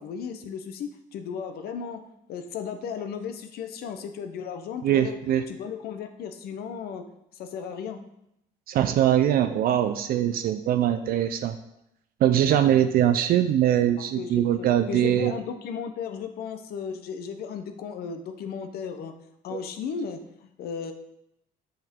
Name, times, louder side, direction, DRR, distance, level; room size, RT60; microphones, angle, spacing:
voice 1, 0.0-2.0 2.3-5.2 5.5-7.0 7.3-8.0 14.2-19.1 19.4-20.9, left 6 dB, 65° left, 7 dB, 0.7 m, -35 dB
voice 2, 4.8-5.4 8.7-11.6 12.2-15.3 19.5-19.6, right 11 dB, 60° right, 9 dB, 0.4 m, -22 dB
5.7 x 5.5 x 3.6 m, 0.81 s
cardioid pair, 110°, 17 cm